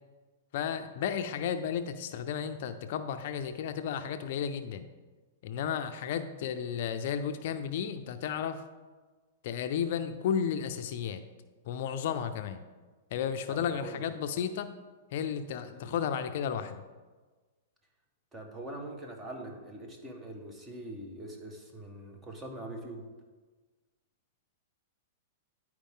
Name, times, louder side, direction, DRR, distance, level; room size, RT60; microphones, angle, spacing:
voice 1, 0.5-4.8 5.4-8.6 9.4-11.2 11.7-12.6 13.1-14.7 15.1-16.8, left 8 dB, 60° left, 9 dB, 0.5 m, -33 dB
voice 2, 13.5-14.1 15.7-16.0 18.3-23.1, right 1 dB, 15° right, 2 dB, 1.3 m, -43 dB
10.0 x 4.7 x 3.6 m, 1.3 s
hypercardioid pair, 130°, 0 cm